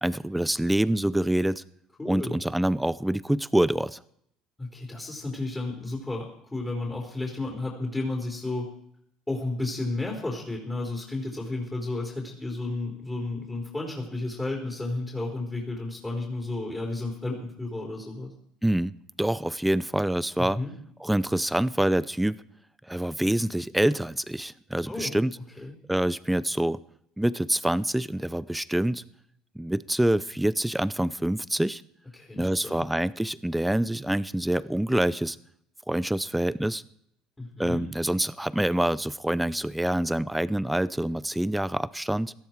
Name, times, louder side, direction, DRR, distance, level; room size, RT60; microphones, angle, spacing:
voice 1, 0.0-1.6 2.0-4.0 18.6-18.9 19.2-20.6 21.0-22.4 22.9-25.4 25.9-26.8 27.2-29.0 29.6-31.8 32.4-35.4 35.9-36.8 37.6-42.3, right 1 dB, 5° right, 18 dB, 0.6 m, -26 dB
voice 2, 2.0-2.4 4.6-8.7 9.3-18.3 20.4-20.7 24.9-25.1 25.6-25.8 32.1-32.8 37.4-37.9, left 2 dB, 15° left, -1 dB, 4.2 m, -32 dB
17.5 x 13.5 x 4.6 m, 0.71 s
supercardioid pair, 85°, 0 cm